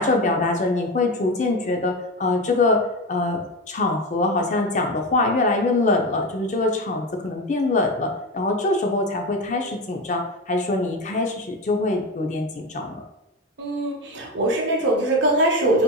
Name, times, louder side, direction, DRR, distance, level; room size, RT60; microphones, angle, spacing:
voice 1, 0.0-2.8 3.1-13.0, left 2 dB, 40° left, 2 dB, 0.4 m, -23 dB
voice 2, 13.6-15.8, right 1 dB, 80° right, -1 dB, 0.7 m, -21 dB
4.2 x 2.6 x 2.2 m, 0.91 s
head